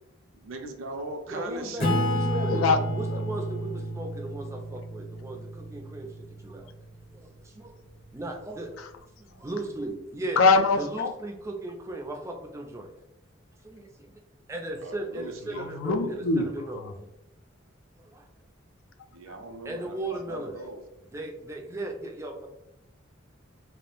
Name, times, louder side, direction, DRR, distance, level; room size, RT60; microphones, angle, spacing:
voice 1, 0.4-1.9 14.8-15.7 16.0-16.2 19.1-20.8, right 2 dB, 80° right, 5 dB, 0.4 m, -39 dB
voice 2, 1.3-2.6 2.9-6.7 7.1-7.7 8.1-8.7 9.2-10.4 10.7-12.9 13.6-14.1 14.5-17.1 18.0-18.2 19.6-20.5 21.1-22.5, right 2 dB, 15° right, 2 dB, 0.3 m, -36 dB
Acoustic guitar / Strum, 1.8-6.8, equal, 45° left, 0.6 m, -30 dB
voice 3, 10.4-11.1 15.8-16.4, left 4 dB, 80° left, 6 dB, 0.3 m, -21 dB
2.3 x 2.0 x 2.9 m, 0.87 s
head